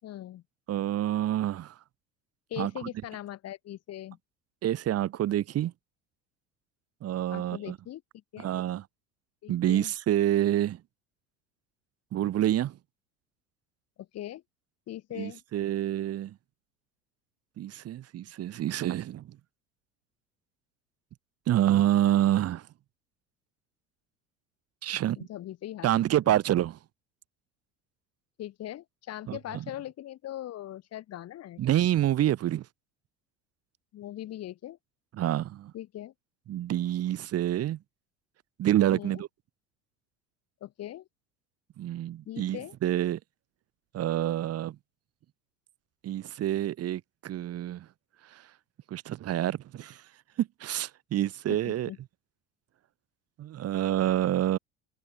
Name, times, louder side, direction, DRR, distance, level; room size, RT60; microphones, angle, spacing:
voice 1, 0.0-0.4 2.5-4.2 7.3-8.0 8.3-8.5 9.4-9.9 14.0-14.4 14.9-15.4 25.2-25.9 26.3-26.4 28.4-31.6 33.9-34.8 35.7-36.1 38.9-39.2 40.6-41.1 42.3-42.7 51.5-52.0, left 13 dB, 50° left, 5.4 m, -40 dB
voice 2, 0.7-1.8 2.6-2.9 4.6-5.7 7.0-7.8 8.4-8.8 9.5-10.8 12.1-12.8 15.1-16.4 17.6-19.4 21.5-22.7 24.8-25.3 25.8-26.8 29.3-29.6 31.6-32.7 35.1-35.7 36.5-37.8 38.6-39.3 41.8-43.2 43.9-44.8 46.0-47.9 48.2-48.5 48.9-50.1 50.4-51.9 53.4-54.6, right 12 dB, 50° right, 3.1 m, -27 dB
hypercardioid pair, 75°, 31 cm